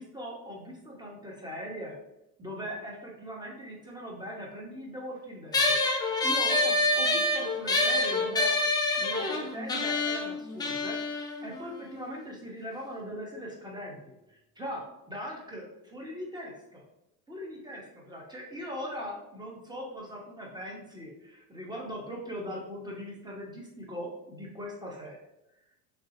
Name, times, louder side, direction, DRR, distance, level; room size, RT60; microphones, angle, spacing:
voice 1, 0.0-2.0 2.4-5.8 6.2-8.6 9.0-14.0 14.3-16.8 17.3-25.2, equal, 10° right, -1 dB, 1.0 m, -40 dB
sound 1, 5.5-12.3, left 2 dB, 10° left, 0.3 m, -27 dB
3.4 x 2.7 x 2.8 m, 0.90 s
hypercardioid pair, 80°, 46 cm